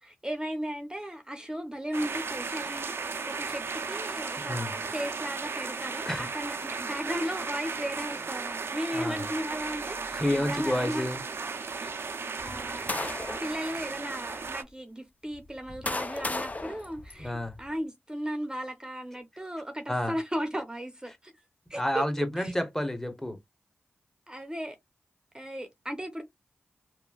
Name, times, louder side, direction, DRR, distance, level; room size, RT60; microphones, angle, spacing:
voice 1, 0.0-11.0 11.8-11.9 12.4-13.1 13.4-21.3 21.7-22.0 22.4-22.5 24.3-24.8 25.3-26.2, equal, 15° right, 0.7 m, -36 dB
sound 1, 1.9-14.6, right 4 dB, 65° right, 0.5 m, -35 dB
voice 2, 10.1-11.2 17.2-17.6 19.9-20.1 21.7-23.4, left 1 dB, 10° left, 1.0 m, -29 dB
sound 2, 12.4-13.5 14.3-14.4 15.3-17.7, left 2 dB, 35° left, 0.5 m, -35 dB
3.0 x 2.1 x 2.3 m
cardioid pair, 40°, 4 cm